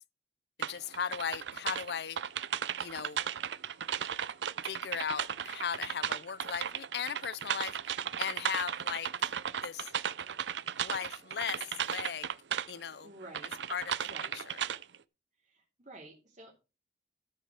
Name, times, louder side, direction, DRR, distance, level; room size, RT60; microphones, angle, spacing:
voice 1, 0.6-2.2 2.8-3.2 4.6-9.3 9.6-9.9 10.8-12.3 12.7-13.1 13.7-14.0 14.3-14.6, left 7 dB, 65° left, 0.5 m, -37 dB
sound 1, 0.6-12.7 13.2-15.0, right 8 dB, 85° right, 0.6 m, -35 dB
voice 2, 13.0-13.5 14.0-14.4 15.4-16.5, right 2 dB, 45° right, 3.3 m, -50 dB
13.5 x 6.6 x 4.8 m
head